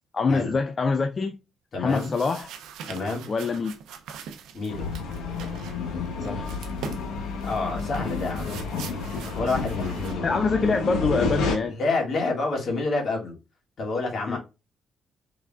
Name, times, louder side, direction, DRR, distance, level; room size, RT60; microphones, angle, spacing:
voice 1, 0.1-1.3 1.8-2.5 3.3-3.7 6.2-6.5 10.2-11.8 14.3-14.4, left 4 dB, 40° left, 0.4 m, -25 dB
voice 2, 1.7-2.1 2.9-3.3 4.5-4.9 7.4-8.6 9.3-10.3 11.7-13.3 13.8-14.4, left 3 dB, 60° left, 1.9 m, -28 dB
sound 1, 1.9-10.1, right 7 dB, 90° right, 0.6 m, -43 dB
sound 2, 4.7-11.6, left 4 dB, 90° left, 1.0 m, -30 dB
4.7 x 3.3 x 2.4 m
cardioid pair, 90°, 0 cm